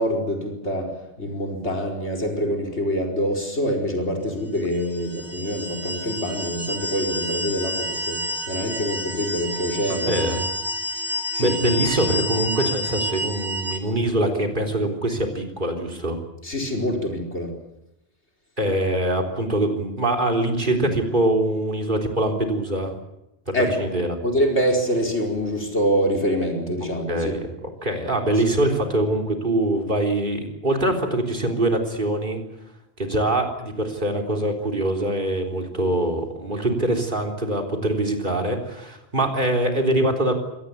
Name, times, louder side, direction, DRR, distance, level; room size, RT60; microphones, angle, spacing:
voice 1, 0.0-10.4 11.0-11.6 16.4-17.5 23.5-23.7 24.2-27.4, equal, 85° left, 2 dB, 5.1 m, -25 dB
sound 1, 4.8-13.8, left 1 dB, 85° right, 3.7 m, -29 dB
voice 2, 9.9-10.5 11.4-16.2 18.6-23.0 23.5-24.2 27.1-27.5 27.8-32.4 33.0-40.3, right 1 dB, 45° right, 3 dB, 4.0 m, -23 dB
25.5 x 18.5 x 8.3 m, 0.88 s
omnidirectional pair, 1.1 m